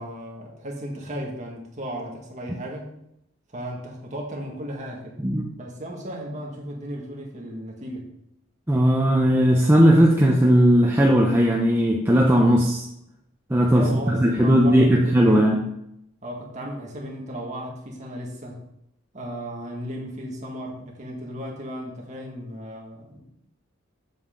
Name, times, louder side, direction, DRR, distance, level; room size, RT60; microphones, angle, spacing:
voice 1, 0.0-2.9 3.5-5.1 5.6-8.1 13.7-15.4 16.2-18.6 19.1-23.2, equal, 35° right, -2 dB, 1.9 m, -35 dB
voice 2, 8.7-12.8 13.5-15.6, equal, 10° right, -1 dB, 0.6 m, -17 dB
7.7 x 7.6 x 3.8 m, 0.80 s
head